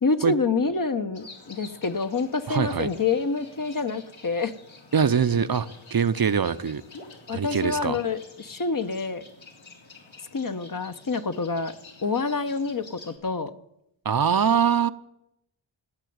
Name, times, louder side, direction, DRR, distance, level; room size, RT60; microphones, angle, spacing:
voice 1, 0.0-4.5 7.3-9.2 10.3-11.7 12.0-13.5, left 4 dB, 45° left, 9 dB, 1.1 m, -27 dB
sound 1, 1.1-13.2, left 3 dB, 75° left, 3.3 m, -49 dB
voice 2, 2.5-2.9 4.9-6.8 7.3-8.0 14.0-14.9, right 7 dB, 50° right, 12 dB, 0.7 m, -23 dB
17.0 x 7.7 x 9.4 m, 0.82 s
wide cardioid pair, 65°, 48 cm